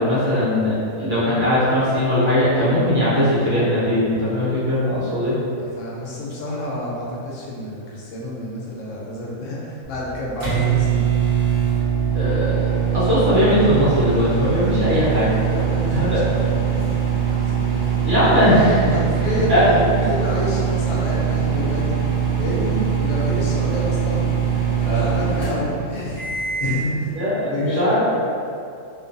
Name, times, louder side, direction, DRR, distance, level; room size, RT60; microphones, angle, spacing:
voice 1, 0.0-5.3 12.1-15.3 15.9-16.2 18.0-18.9 19.5-19.6 27.1-28.0, left 1 dB, 65° right, -11 dB, 1.0 m, -19 dB
voice 2, 5.6-11.1 15.5-17.1 17.6-18.0 18.9-24.3 24.9-27.9, left 1 dB, 70° left, -5 dB, 0.9 m, -28 dB
sound 1, 9.8-26.8, right 7 dB, 15° right, 1.1 m, -22 dB
2.5 x 2.2 x 2.5 m, 2.5 s
omnidirectional pair, 1.4 m